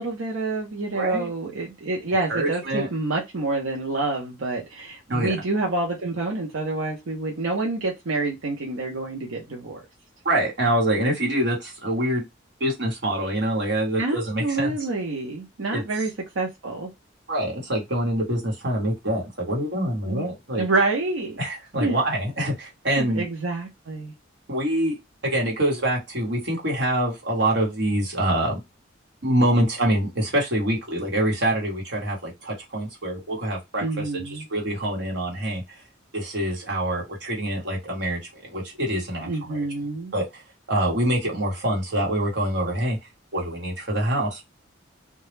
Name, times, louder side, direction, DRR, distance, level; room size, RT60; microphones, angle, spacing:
voice 1, 0.0-9.8 14.0-16.1 16.4-16.9 20.0-20.3 20.6-21.4 21.8-21.9 23.0-24.1 33.8-34.4 39.2-40.1, right 3 dB, 90° right, 0.6 m, -27 dB
voice 2, 0.9-1.3 2.3-2.9 5.1-5.4 10.2-12.3 12.6-14.8 15.7-15.8 17.3-20.6 21.4-23.3 24.5-25.0 25.2-28.6 29.2-35.6 36.1-39.7 40.1-40.4 40.7-43.0 43.3-44.4, right 1 dB, 60° right, 1.0 m, -25 dB
2.2 x 2.0 x 3.1 m
head